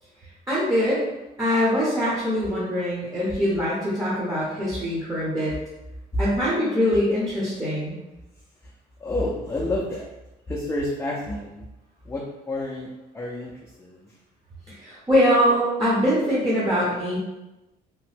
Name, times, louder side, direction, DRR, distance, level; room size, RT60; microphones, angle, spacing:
voice 1, 0.5-1.0 1.4-5.5 6.2-8.0 14.8-17.2, equal, 20° right, -7 dB, 0.8 m, -23 dB
voice 2, 9.0-10.1 10.5-11.6 12.1-12.9 13.1-13.5 13.8-14.0, left 1 dB, 15° left, -4 dB, 0.4 m, -29 dB
2.9 x 2.1 x 3.2 m, 1.0 s
cardioid pair, 110°, 17 cm